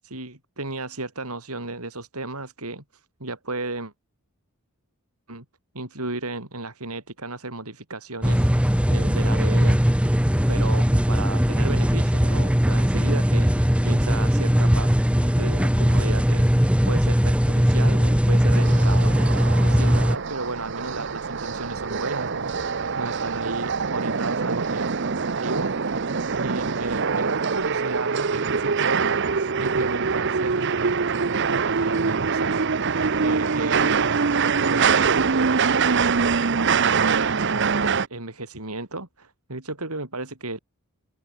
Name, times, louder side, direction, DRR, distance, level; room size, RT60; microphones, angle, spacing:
voice 1, 0.0-3.9 5.3-5.4 5.7-9.8 10.5-14.9 15.2-24.9 25.3-26.0 26.3-40.6, right 2 dB, 80° right, 6.2 m, -34 dB
sound 1, 8.2-20.2, equal, 5° right, 1.1 m, -19 dB
sound 2, 18.5-38.1, right 5 dB, 55° right, 0.8 m, -24 dB
head